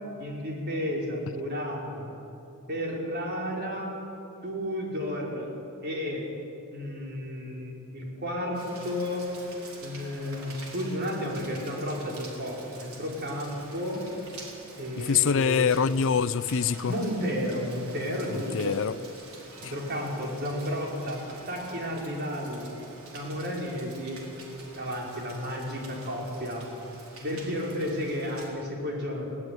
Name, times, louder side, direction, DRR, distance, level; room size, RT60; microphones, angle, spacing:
voice 1, 0.2-2.1 2.7-4.0 4.4-5.5 5.8-6.2 6.7-9.4 9.8-14.0 14.8-15.8 16.9-18.8 19.6-21.2 21.5-22.6 23.1-24.2 24.8-26.7 27.2-29.3, equal, 50° right, -2 dB, 5.2 m, -32 dB
Rain, 8.5-28.5, right 3 dB, 90° right, 4.7 m, -47 dB
voice 2, 15.0-16.9 18.3-18.9, left 6 dB, 65° left, 15 dB, 0.5 m, -25 dB
20.0 x 18.0 x 9.7 m, 2.9 s
head